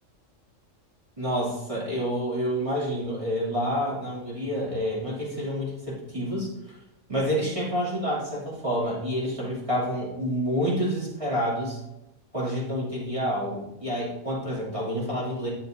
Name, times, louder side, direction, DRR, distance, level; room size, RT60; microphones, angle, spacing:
voice 1, 1.2-6.8 7.1-11.8 12.3-15.5, equal, 25° right, -7 dB, 2.7 m, -28 dB
10.0 x 7.7 x 2.6 m, 0.89 s
omnidirectional pair, 1.4 m